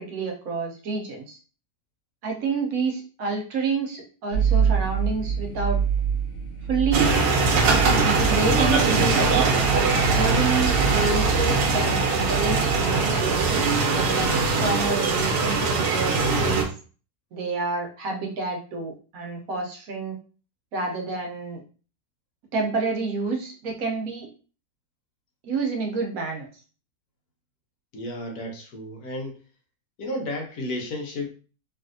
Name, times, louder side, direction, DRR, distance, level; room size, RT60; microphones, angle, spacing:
voice 1, 0.0-1.4 2.2-5.8 6.7-7.2 8.0-13.5 13.9-16.7 17.3-20.2 20.7-21.6 22.5-24.3 25.4-26.5, right 4 dB, 70° right, 2 dB, 1.1 m, -28 dB
sound 1, 4.3-15.3, right 7 dB, 55° left, 0.9 m, -28 dB
sound 2, 6.9-16.6, right 4 dB, 85° right, 1.3 m, -21 dB
voice 2, 27.9-29.4 30.0-31.3, left 1 dB, 75° left, 1 dB, 1.3 m, -32 dB
3.3 x 2.7 x 2.5 m, 0.37 s
omnidirectional pair, 1.6 m